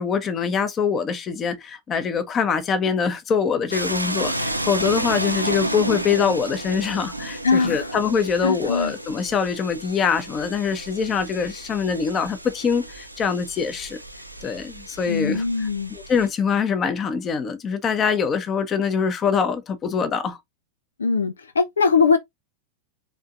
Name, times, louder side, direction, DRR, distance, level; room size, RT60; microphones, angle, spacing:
voice 1, 0.0-14.0 14.4-20.4, left 6 dB, 25° left, 1.0 m, -24 dB
sound 1, 3.7-16.3, right 1 dB, 90° right, 0.7 m, -32 dB
voice 2, 7.4-7.8 8.4-8.9 15.1-15.9 21.0-22.2, left 5 dB, 70° left, 0.5 m, -21 dB
5.0 x 3.7 x 2.5 m
figure-of-eight pair, 90°, 0 cm